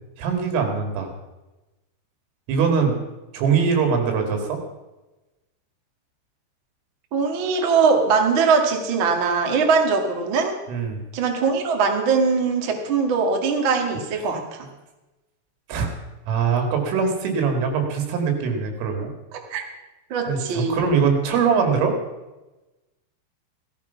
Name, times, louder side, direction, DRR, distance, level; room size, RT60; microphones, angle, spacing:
voice 1, 0.2-1.1 2.5-3.0 3.3-4.6 10.7-11.0 15.7-15.9 16.3-19.1 20.3-21.9, right 6 dB, 85° right, 5 dB, 4.9 m, -22 dB
voice 2, 7.1-10.6 11.1-14.7 19.3-19.6 20.1-20.8, right 5 dB, 55° right, 3 dB, 1.3 m, -21 dB
16.5 x 14.5 x 5.8 m, 1.1 s
omnidirectional pair, 5.7 m